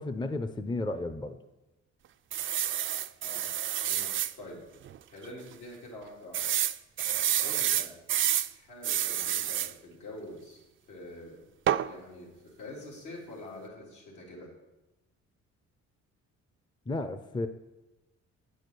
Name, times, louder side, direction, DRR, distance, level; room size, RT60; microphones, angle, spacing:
voice 1, 0.0-1.4 16.9-17.5, left 2 dB, 15° left, 10 dB, 0.6 m, -33 dB
sound 1, 2.3-4.3 4.9-5.0 5.2-5.3 6.3-8.5 8.8-9.7 11.7-11.9, right 11 dB, 45° right, 0.4 m, -29 dB
voice 2, 3.2-3.5 3.8-4.6 5.1-6.4 7.4-8.0 8.6-10.6 10.9-11.4 11.9-14.5, left 1 dB, 80° left, -4 dB, 3.6 m, -46 dB
8.6 x 6.4 x 6.8 m, 1.0 s
cardioid pair, 90°, 30 cm